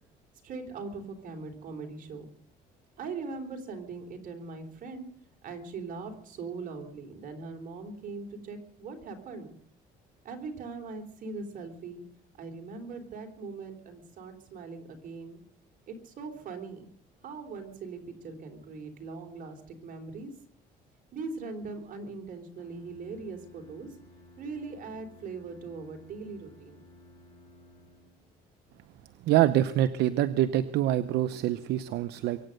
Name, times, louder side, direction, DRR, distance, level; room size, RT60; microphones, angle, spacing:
voice 1, 0.4-2.3 3.0-5.0 5.4-9.5 10.2-12.0 12.4-15.4 15.9-16.8 17.2-20.3 21.1-23.9 24.4-26.8, right 4 dB, 55° right, 5 dB, 3.7 m, -40 dB
Bowed string instrument, 22.5-28.4, left 1 dB, 30° left, 7.1 m, -55 dB
voice 2, 29.3-32.4, right 13 dB, 80° right, 12 dB, 0.7 m, -25 dB
23.5 x 9.2 x 6.6 m, 0.68 s
cardioid pair, 110°, 17 cm